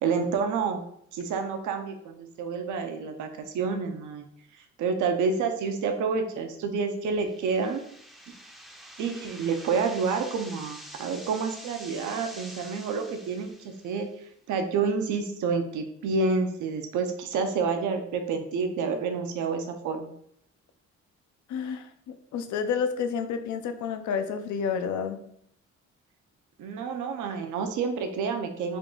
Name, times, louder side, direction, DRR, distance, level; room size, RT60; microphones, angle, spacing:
voice 1, 0.0-0.8 1.1-4.2 4.6-7.8 8.3-8.4 9.0-14.1 14.5-20.1 26.6-28.8, right 5 dB, 75° right, 5 dB, 0.6 m, -29 dB
sound 1, 7.1-14.1, equal, ahead, 0.5 m, -46 dB
voice 2, 21.5-25.2, left 6 dB, 75° left, 8 dB, 0.5 m, -30 dB
3.7 x 2.3 x 3.6 m, 0.68 s
cardioid pair, 90°, 30 cm